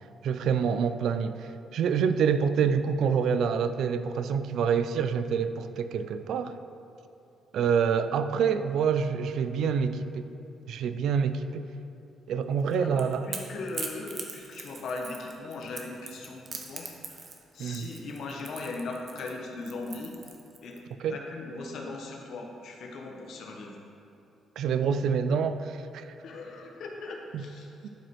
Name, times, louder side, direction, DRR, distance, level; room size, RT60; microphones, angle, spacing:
voice 1, 0.2-6.6 7.5-10.3 10.7-11.7 12.3-13.3 17.6-17.9 21.0-21.2 24.6-26.1 27.3-27.4 27.8-27.9, right 6 dB, 75° right, 11 dB, 0.3 m, -27 dB
Crackle / Crack, 12.6-20.8, right 4 dB, 45° right, 0.8 m, -41 dB
voice 2, 12.7-20.2 20.6-20.8 21.1-23.8 26.2-27.9, left 3 dB, 70° left, 1 dB, 1.0 m, -39 dB
11.5 x 5.0 x 3.0 m, 2.8 s
cardioid pair, 90°, 0 cm